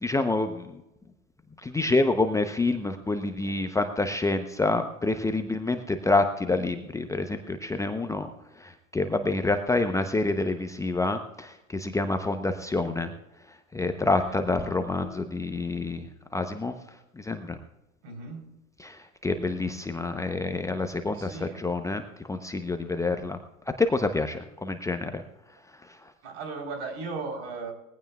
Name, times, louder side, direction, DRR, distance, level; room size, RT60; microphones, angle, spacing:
voice 1, 0.0-0.8 1.6-8.3 8.6-13.1 13.7-16.1 16.3-16.7 17.2-17.6 18.8-22.0 22.3-23.4 23.8-25.2, left 2 dB, 10° left, 7 dB, 0.8 m, -27 dB
voice 2, 18.0-18.6 21.1-21.6 26.2-27.7, right 4 dB, 55° right, 4 dB, 4.0 m, -37 dB
20.5 x 15.5 x 2.4 m, 0.93 s
figure-of-eight pair, 90°, 40 cm